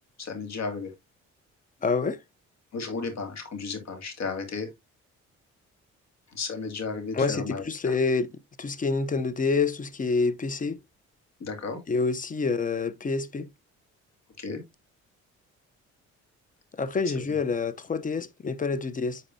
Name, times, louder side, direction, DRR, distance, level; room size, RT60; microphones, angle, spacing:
voice 1, 0.2-0.9 2.7-4.7 6.3-7.9 11.4-11.8 14.4-14.6, left 4 dB, 60° left, 2.3 m, -34 dB
voice 2, 1.8-2.2 7.1-8.3 8.6-10.8 11.9-13.5 16.7-19.2, left 4 dB, 25° left, 0.7 m, -27 dB
9.0 x 4.1 x 2.7 m
cardioid pair, 90°, 30 cm